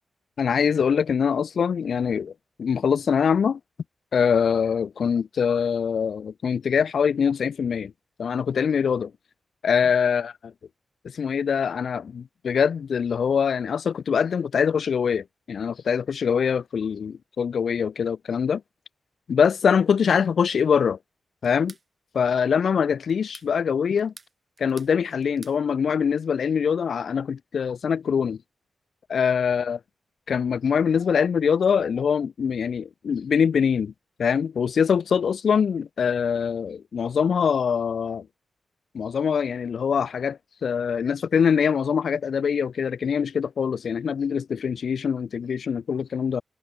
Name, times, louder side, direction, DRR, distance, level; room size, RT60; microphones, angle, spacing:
voice 1, 0.4-2.3 2.6-3.6 4.1-7.9 8.2-9.1 9.6-10.5 11.1-18.6 19.3-21.0 21.4-21.7 22.1-24.1 24.6-28.4 29.1-29.8 30.3-33.9 34.2-38.3 38.9-46.4, left 7 dB, 70° left, 2.0 m, -23 dB
sound 1, 21.4-21.9 23.1-23.5 24.0-25.0 25.2-25.6, right 4 dB, 35° right, 4.2 m, -47 dB
wide cardioid pair, 130°, 0 cm